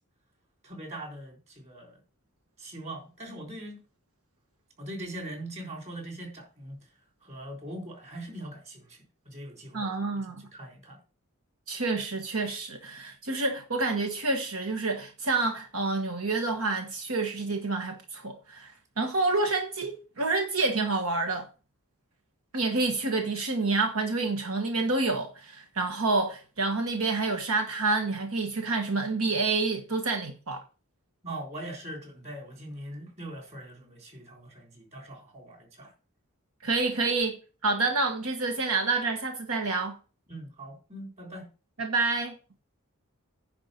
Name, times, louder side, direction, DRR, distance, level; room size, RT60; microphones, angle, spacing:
voice 1, 0.6-2.0 2.6-3.8 4.8-6.8 7.2-9.0 9.3-9.9 10.5-11.0 31.2-35.9 40.3-41.5, right 1 dB, 35° right, 3.7 m, -41 dB
voice 2, 9.7-10.4 11.7-21.5 22.5-30.6 36.6-40.0 41.8-42.3, right 3 dB, 85° right, 1.5 m, -28 dB
10.0 x 4.4 x 6.8 m
head